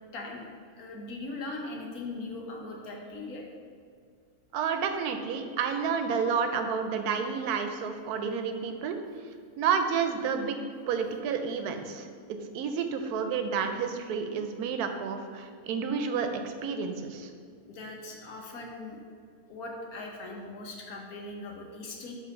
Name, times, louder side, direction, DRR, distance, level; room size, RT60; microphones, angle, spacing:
voice 1, 0.1-0.5 0.8-3.4 17.7-19.0 19.5-22.1, left 2 dB, 75° left, 0 dB, 1.3 m, -40 dB
voice 2, 4.5-9.0 9.6-10.6 10.9-17.3, right 6 dB, 85° right, 6 dB, 1.1 m, -30 dB
5.4 x 3.4 x 5.2 m, 2.2 s
omnidirectional pair, 1.6 m